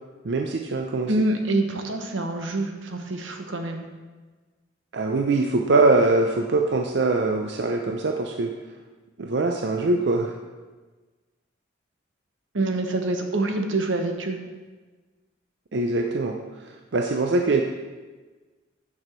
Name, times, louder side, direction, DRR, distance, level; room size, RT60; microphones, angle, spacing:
voice 1, 0.2-1.1 4.9-8.5 9.2-10.3 15.7-17.6, right 3 dB, 60° right, 3 dB, 0.5 m, -23 dB
voice 2, 1.1-3.9 12.5-14.4, right 2 dB, 85° right, 5 dB, 1.0 m, -26 dB
9.6 x 6.1 x 4.4 m, 1.3 s
head